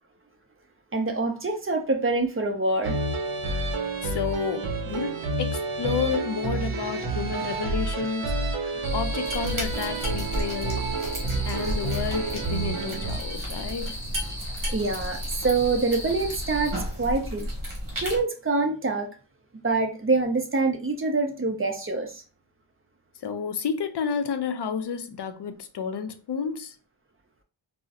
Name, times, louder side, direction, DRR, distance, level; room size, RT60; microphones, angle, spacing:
voice 1, 0.9-3.0 7.0-8.1 8.6-8.9 14.7-17.5 18.0-19.1 19.6-22.2, right 3 dB, 25° right, 0.5 m, -26 dB
sound 1, 2.8-13.2, right 3 dB, 80° right, 0.7 m, -29 dB
voice 2, 4.0-8.5 8.9-10.9 11.4-14.0 23.2-26.7, left 6 dB, 55° left, 0.5 m, -31 dB
sound 2, 8.8-16.7, left 1 dB, 5° left, 0.9 m, -39 dB
sound 3, 9.3-18.2, equal, 40° right, 1.4 m, -33 dB
3.9 x 2.0 x 2.4 m
wide cardioid pair, 105°, 49 cm